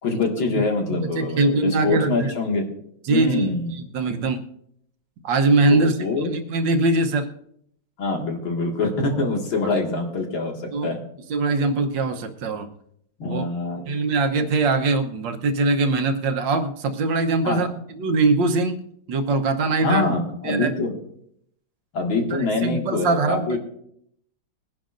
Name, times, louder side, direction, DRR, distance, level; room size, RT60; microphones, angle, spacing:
voice 1, 0.0-2.7 3.1-3.8 5.7-6.3 8.0-10.5 10.8-11.0 13.2-13.8 17.4-17.8 19.8-20.9 21.9-23.6, left 3 dB, 75° left, 0 dB, 2.8 m, -24 dB
voice 2, 0.9-2.3 3.0-4.4 5.2-7.3 10.7-10.9 11.3-12.7 13.3-13.4 13.9-17.7 18.0-20.0 20.4-20.7 22.3-23.6, right 3 dB, 70° right, 6 dB, 1.6 m, -22 dB
21.5 x 10.5 x 2.6 m, 0.71 s
omnidirectional pair, 2.2 m